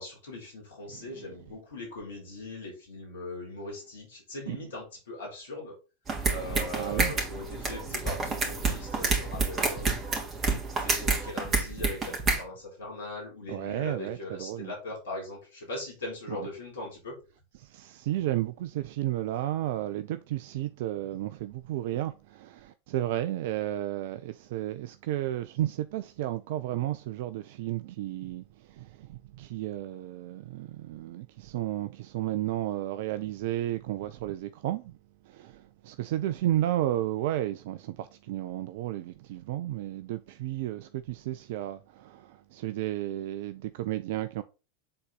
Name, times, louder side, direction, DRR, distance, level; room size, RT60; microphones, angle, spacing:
voice 1, 0.0-5.8 6.3-9.9 10.8-17.2, left 2 dB, 70° left, 3.3 m, -40 dB
sound 1, 6.1-12.4, right 3 dB, 25° right, 2.5 m, -29 dB
voice 2, 6.8-7.1 13.5-14.7 16.3-16.5 17.6-34.9 35.3-44.4, right 13 dB, 55° right, 0.4 m, -33 dB
7.6 x 4.0 x 3.9 m
figure-of-eight pair, 85°, 0 cm